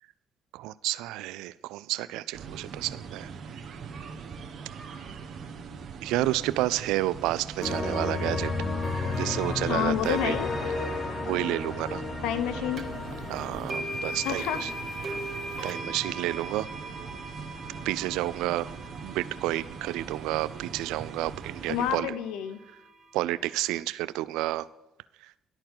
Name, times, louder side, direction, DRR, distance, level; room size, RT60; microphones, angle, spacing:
voice 1, 0.5-3.3 6.0-8.5 9.2-10.4 11.3-12.0 13.3-14.7 15.6-16.7 17.8-18.7 19.0-22.1 23.1-24.7, right 16 dB, 85° right, 18 dB, 0.3 m, -30 dB
sound 1, 2.3-22.0, right 6 dB, 60° right, 1.2 m, -42 dB
sound 2, 7.6-15.2, left 3 dB, 45° left, 1.3 m, -33 dB
voice 2, 9.7-10.5 12.2-12.8 14.2-14.7 15.1-15.2 21.7-22.6, left 10 dB, 85° left, 12 dB, 0.7 m, -29 dB
sound 3, 12.8-12.9 13.7-21.7, right 1 dB, 45° right, 1.4 m, -39 dB
11.5 x 4.5 x 7.5 m, 0.92 s
supercardioid pair, 70°, 0 cm